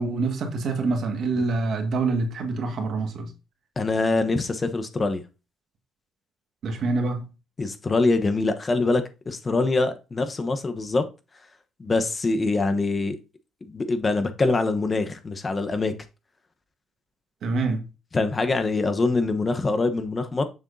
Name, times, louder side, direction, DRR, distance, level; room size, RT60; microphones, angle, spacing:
voice 1, 0.0-3.3 6.6-7.3 17.4-17.9, right 3 dB, 65° right, 1.8 m, -26 dB
voice 2, 3.8-5.2 7.6-11.0 11.8-13.2 13.6-15.9 18.1-20.4, left 3 dB, 30° left, 1.0 m, -24 dB
7.1 x 6.2 x 2.7 m
cardioid pair, 90°, 0 cm